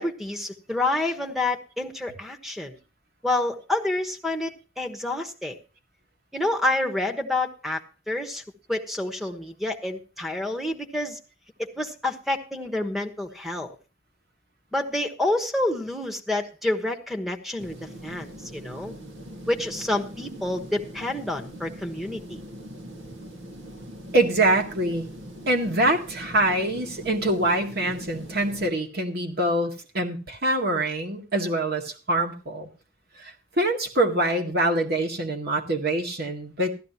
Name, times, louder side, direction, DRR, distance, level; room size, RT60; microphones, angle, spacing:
voice 1, 0.0-2.8 3.2-5.6 6.3-7.8 8.1-8.4 8.7-11.2 11.6-13.8 14.7-17.8 18.0-18.9 19.5-22.4, left 2 dB, ahead, 1 dB, 1.2 m, -28 dB
sound 1, 17.6-28.7, equal, 80° right, 1.9 m, -41 dB
voice 2, 24.1-25.1 25.5-32.7 33.2-36.7, right 1 dB, 55° right, 3 dB, 2.1 m, -24 dB
15.5 x 12.5 x 2.9 m, 0.32 s
head